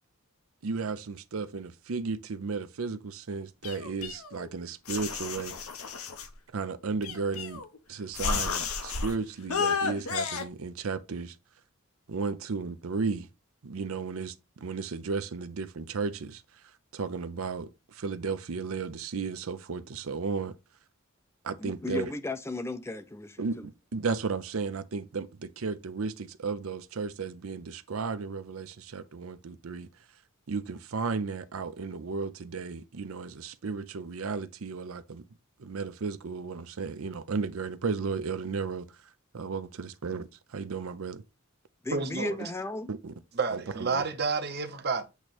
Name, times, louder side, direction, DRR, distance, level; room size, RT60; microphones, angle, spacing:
voice 1, 0.6-5.6 6.5-7.6 7.9-11.4 12.1-13.3 13.6-16.6 16.9-20.5 21.4-22.1 23.4-29.9 30.5-35.2 35.6-39.0 39.3-41.2 42.9-43.1 43.5-44.0, right 4 dB, 75° right, 0.6 m, -34 dB
sound 1, 3.6-4.5 4.9-6.3 7.0-7.8 8.1-9.1 9.5-10.4, left 5 dB, 85° left, 1.0 m, -32 dB
voice 2, 21.6-23.7 41.8-42.9, left 2 dB, 10° left, 0.4 m, -35 dB
voice 3, 41.9-42.5 43.3-45.0, right 4 dB, 50° right, 0.9 m, -30 dB
8.1 x 3.1 x 4.3 m
head